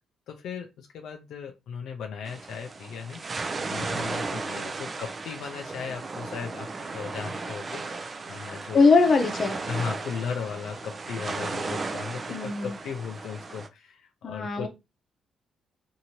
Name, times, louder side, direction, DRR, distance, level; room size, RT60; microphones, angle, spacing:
voice 1, 0.3-8.9 9.7-14.7, left 6 dB, 75° left, 3 dB, 0.4 m, -37 dB
sound 1, 2.3-13.7, right 3 dB, 35° right, 0.4 m, -35 dB
voice 2, 8.7-9.6 12.3-12.8 14.2-14.7, left 4 dB, 45° left, 5 dB, 0.7 m, -21 dB
2.7 x 2.7 x 2.9 m, 0.24 s
cardioid pair, 90°, 0 cm